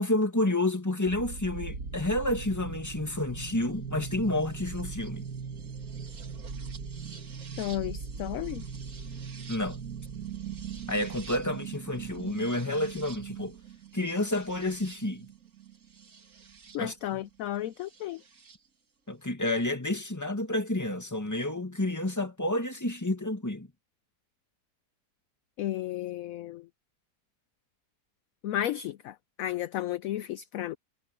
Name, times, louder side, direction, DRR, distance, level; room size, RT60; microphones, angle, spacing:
voice 1, 0.0-5.3 9.5-9.8 10.9-13.6 13.9-15.3 16.8-17.2 19.1-23.7, left 1 dB, 10° left, 2.0 m, -30 dB
sound 1, 1.0-16.8 17.9-18.6, right 6 dB, 60° right, 2.2 m, -40 dB
voice 2, 7.6-8.7 16.7-18.2 25.6-26.7 28.4-30.8, left 13 dB, 70° left, 0.9 m, -33 dB
omnidirectional pair, 1.7 m